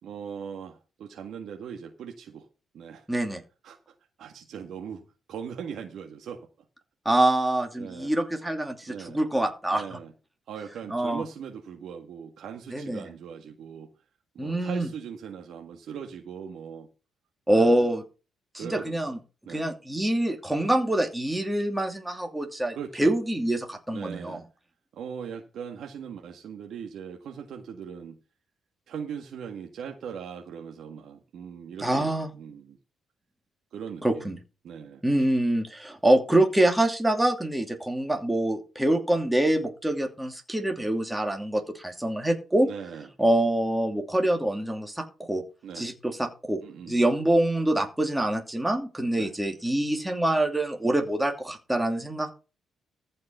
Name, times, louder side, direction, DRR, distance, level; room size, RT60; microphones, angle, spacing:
voice 1, 0.0-2.5 2.7-3.1 3.6-3.8 4.2-5.0 5.3-6.5 7.8-8.1 8.9-9.2 9.7-10.1 10.5-13.9 14.3-16.9 17.5-17.9 18.6-19.1 19.4-19.7 22.7-23.1 23.9-24.4 24.9-28.2 28.9-32.8 33.7-34.4 34.6-35.3 42.6-43.1 45.6-45.9 46.6-47.0 49.2-49.3, right 7 dB, 70° right, 3 dB, 1.8 m, -40 dB
voice 2, 3.1-3.4 7.0-9.8 10.9-11.2 12.7-13.1 14.4-14.9 17.5-18.0 18.5-19.2 19.5-24.4 31.8-32.3 34.0-34.4 35.0-42.7 43.2-45.4 45.8-46.6 46.9-52.3, right 1 dB, 5° right, 3 dB, 2.6 m, -25 dB
14.5 x 5.4 x 6.7 m, 0.32 s
cardioid pair, 90°, 0 cm